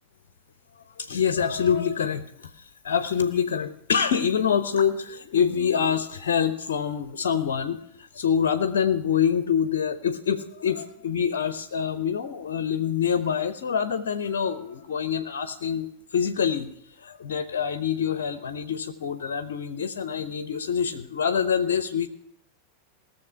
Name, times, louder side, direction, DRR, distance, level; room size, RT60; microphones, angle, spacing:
voice 1, 1.0-2.5 2.8-16.7 17.0-22.1, left 7 dB, 60° left, 12 dB, 0.7 m, -26 dB
17.5 x 6.9 x 5.7 m, 0.71 s
figure-of-eight pair, 90°, 0 cm